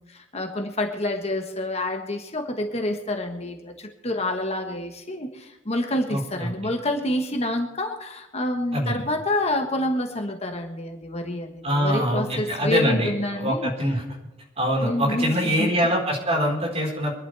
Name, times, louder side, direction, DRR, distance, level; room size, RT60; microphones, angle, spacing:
voice 1, 0.0-13.7 14.8-15.7, left 1 dB, 30° left, 4 dB, 1.3 m, -28 dB
voice 2, 6.1-6.5 8.7-9.0 11.6-13.1 13.4-14.0 14.6-17.1, equal, 30° right, -1 dB, 4.5 m, -24 dB
25.0 x 11.5 x 3.4 m, 1.0 s
head